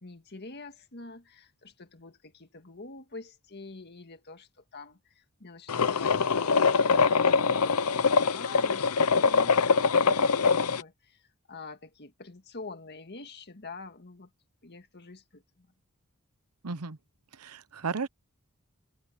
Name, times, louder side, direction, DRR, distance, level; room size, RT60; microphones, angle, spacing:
voice 1, 0.0-14.3 14.6-15.7, left 3 dB, 50° left, 1.9 m, -46 dB
sound 1, 5.7-10.8, left 5 dB, 75° left, 0.8 m, -23 dB
voice 2, 16.6-17.0 17.4-18.1, right 4 dB, 85° right, 0.9 m, -34 dB
open air
head